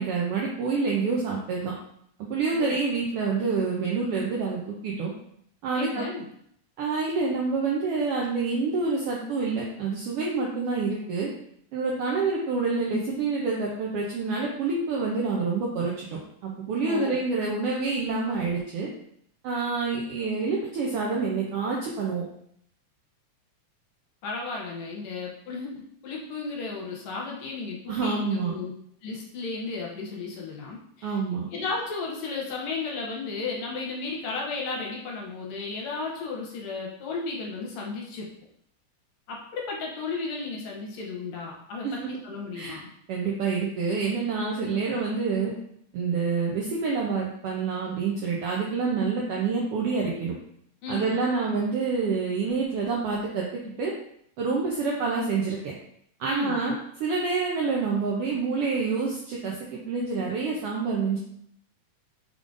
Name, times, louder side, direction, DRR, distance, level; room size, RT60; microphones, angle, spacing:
voice 1, 0.0-1.7 2.3-5.1 5.6-6.1 6.8-11.3 11.7-18.9 19.4-22.2 27.9-28.6 31.0-31.5 41.8-42.1 42.5-42.8 43.1-45.5 45.9-50.3 50.9-53.9 54.4-55.7 56.2-56.7 57.0-61.2, right 4 dB, 80° right, -2 dB, 1.3 m, -27 dB
voice 2, 5.7-6.2 16.8-17.2 24.2-28.7 29.0-31.2 31.5-38.3 39.3-42.9 50.8-51.2 56.3-56.6, left 4 dB, 75° left, -1 dB, 1.9 m, -34 dB
5.1 x 3.6 x 2.5 m, 0.69 s
omnidirectional pair, 3.3 m